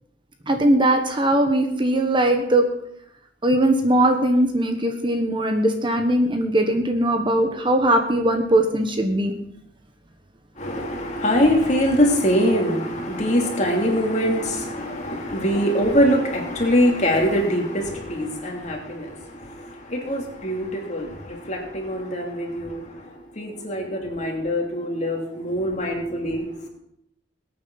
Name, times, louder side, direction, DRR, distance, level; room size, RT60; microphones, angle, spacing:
voice 1, 0.5-2.6 3.4-9.3, right 1 dB, 25° right, 5 dB, 1.2 m, -20 dB
voice 2, 10.6-26.7, equal, 40° left, 0 dB, 2.9 m, -23 dB
21.0 x 8.9 x 4.1 m, 0.76 s
head